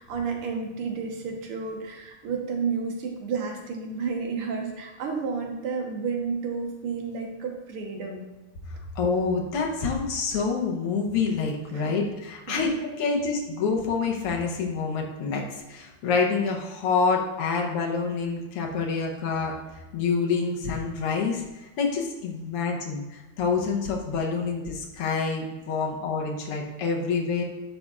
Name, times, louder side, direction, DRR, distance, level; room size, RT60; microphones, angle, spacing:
voice 1, 0.0-8.2 11.7-11.9 12.5-12.7, right 5 dB, 80° right, 2 dB, 2.0 m, -31 dB
voice 2, 9.0-27.4, left 4 dB, 85° left, 0 dB, 1.9 m, -27 dB
9.3 x 6.7 x 2.4 m, 1.1 s
omnidirectional pair, 2.4 m